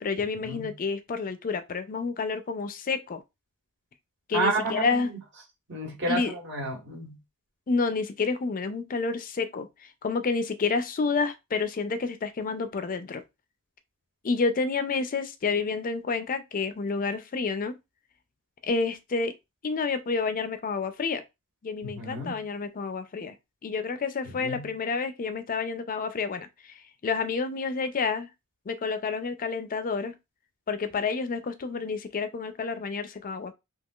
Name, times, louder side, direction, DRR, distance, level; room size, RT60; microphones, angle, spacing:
voice 1, 0.0-3.2 4.3-5.1 6.1-6.3 7.7-9.7 10.0-13.2 14.2-17.7 18.6-19.3 19.6-21.2 21.6-23.3 23.6-26.5 27.0-28.3 28.7-30.2 30.7-33.5, left 4 dB, 40° left, 0.4 m, -29 dB
voice 2, 4.3-5.0 5.7-7.2 21.8-22.3 24.4-24.7, right 2 dB, 55° right, 1.5 m, -30 dB
3.6 x 2.9 x 2.3 m
head